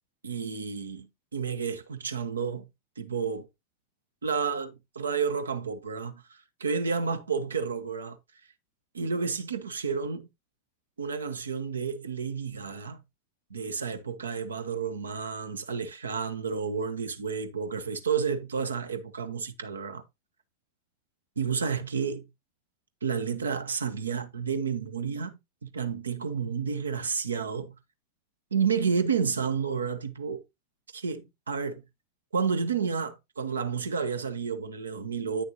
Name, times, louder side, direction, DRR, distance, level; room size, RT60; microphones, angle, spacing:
voice 1, 0.2-2.7 3.0-3.5 4.2-8.2 8.9-10.3 11.0-13.0 13.5-20.0 21.4-22.3 23.0-27.8 28.5-30.4 30.9-31.8 32.3-35.4, right 6 dB, 70° right, 0.9 m, -31 dB
9.6 x 6.6 x 2.7 m
figure-of-eight pair, 90°, 0 cm